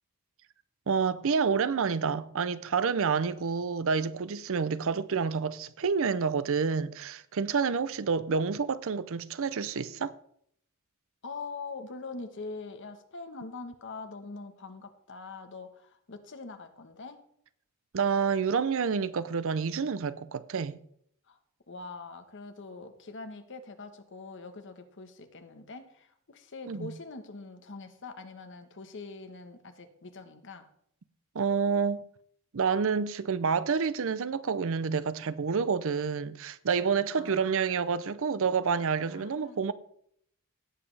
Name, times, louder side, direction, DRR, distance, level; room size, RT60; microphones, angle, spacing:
voice 1, 0.9-10.1 17.9-20.8 26.7-26.9 31.3-32.0 32.5-39.7, right 5 dB, 65° right, 0.6 m, -28 dB
voice 2, 11.2-17.2 21.3-21.4 21.7-30.7 37.1-37.6 39.1-39.6, left 3 dB, 60° left, 1.2 m, -43 dB
17.0 x 7.5 x 3.3 m
head